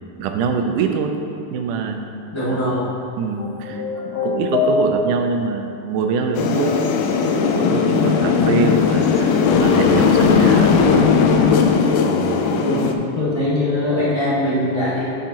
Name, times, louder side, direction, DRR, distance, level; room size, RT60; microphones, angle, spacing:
voice 1, 0.2-1.1 1.5-2.2 3.2-6.8 7.5-11.2 12.1-12.9, right 5 dB, 90° right, 5 dB, 2.1 m, -24 dB
voice 2, 2.3-2.9 8.0-8.2 12.6-12.9 13.1-15.1, left 1 dB, 20° left, -10 dB, 0.8 m, -21 dB
sound 1, 3.4-5.4, left 3 dB, 70° left, 1.5 m, -23 dB
sound 2, 6.3-12.9, left 5 dB, 85° left, 2.0 m, -17 dB
8.5 x 6.6 x 2.9 m, 2.8 s
omnidirectional pair, 3.5 m